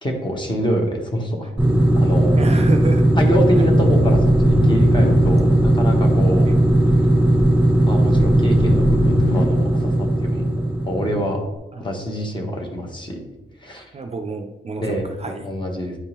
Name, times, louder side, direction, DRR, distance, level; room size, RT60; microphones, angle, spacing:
voice 1, 0.0-1.5 1.9-2.4 3.2-6.4 6.9-7.1 7.8-10.5 10.8-11.4 11.8-13.2 13.6-13.9 14.8-16.0, equal, 25° left, 2 dB, 1.0 m, -25 dB
sound 1, 1.6-11.4, right 1 dB, 5° right, 1.4 m, -17 dB
voice 2, 2.4-3.0 3.5-3.6 11.7-11.8 13.9-15.4, right 3 dB, 30° right, 5 dB, 0.4 m, -28 dB
sound 2, 3.8-5.7 6.0-6.1 6.4-6.9 7.3-9.4, left 3 dB, 70° left, 0.5 m, -26 dB
9.5 x 3.5 x 2.9 m, 1.0 s
wide cardioid pair, 175°, 20 cm